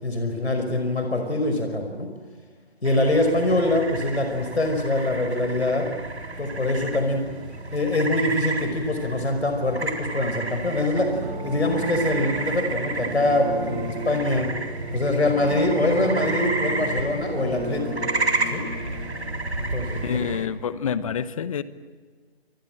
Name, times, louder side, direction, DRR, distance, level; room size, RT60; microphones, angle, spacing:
voice 1, 0.0-2.1 2.8-5.9 6.4-7.3 7.7-11.2 11.4-14.5 14.9-18.1 18.5-18.6 19.6-20.2, left 2 dB, 85° left, 5.2 m, -24 dB
sound 1, 2.8-20.5, right 3 dB, 85° right, 4.2 m, -31 dB
sound 2, 10.9-19.4, right 1 dB, 50° right, 6.4 m, -34 dB
voice 2, 20.0-21.6, left 7 dB, 30° left, 1.1 m, -27 dB
28.0 x 22.0 x 9.0 m
figure-of-eight pair, 150°, 32 cm